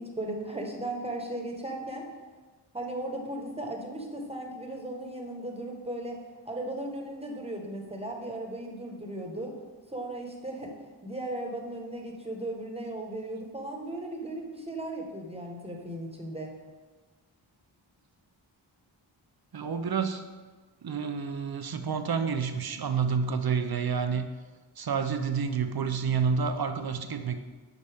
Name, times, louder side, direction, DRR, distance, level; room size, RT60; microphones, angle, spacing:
voice 1, 0.0-2.1 2.7-9.6 9.9-16.5, right 1 dB, 10° right, 2 dB, 1.3 m, -36 dB
voice 2, 19.5-20.3 20.8-24.3 24.8-27.4, right 6 dB, 50° right, 8 dB, 0.6 m, -29 dB
9.5 x 4.2 x 3.5 m, 1.3 s
cardioid pair, 50°, 47 cm